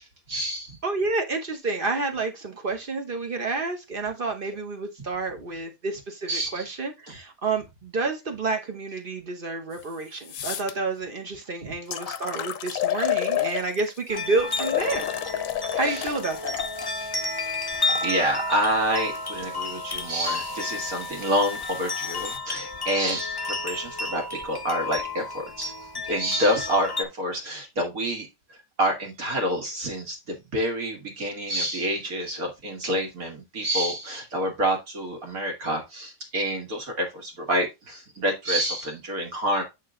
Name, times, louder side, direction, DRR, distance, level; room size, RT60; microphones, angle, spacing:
voice 1, 0.3-0.8 6.3-6.7 7.1-7.2 15.9-16.1 17.0-17.1 17.4-25.7 26.1-28.3 28.8-39.6, equal, 60° right, 2.3 m, -28 dB
voice 2, 0.8-15.1 15.7-16.5, right 3 dB, 40° right, 1.0 m, -29 dB
sound 1, 9.7-9.8 10.2-10.7 11.4-11.5 11.9-14.0 14.5-18.1 19.0-22.4, left 12 dB, 65° left, 0.9 m, -32 dB
sound 2, 14.1-27.0, left 3 dB, 40° left, 0.3 m, -32 dB
8.4 x 3.8 x 3.7 m
omnidirectional pair, 1.7 m